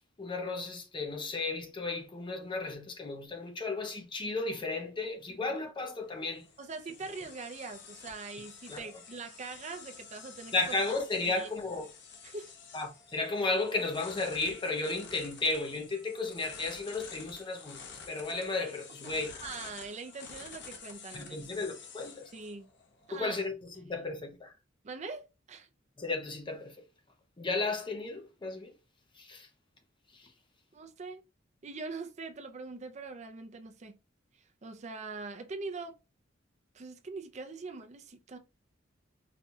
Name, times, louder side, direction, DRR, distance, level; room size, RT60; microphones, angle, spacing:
voice 1, 0.0-6.5 8.7-8.8 10.5-11.9 12.7-17.8 18.1-19.4 21.1-22.3 23.1-24.5 26.0-26.8 27.4-28.7 29.2-29.5, left 3 dB, 25° left, 0.6 m, -34 dB
sound 1, 6.0-23.2, left 5 dB, 65° left, 0.8 m, -50 dB
voice 2, 6.6-10.8 11.2-11.5 12.2-12.5 19.0-19.1 19.4-21.4 22.3-22.7 23.1-23.4 23.8-24.0 24.8-25.7 30.7-31.2 31.6-34.0 34.6-36.0 36.7-38.4, right 4 dB, 35° right, 0.5 m, -42 dB
4.2 x 2.3 x 2.7 m
head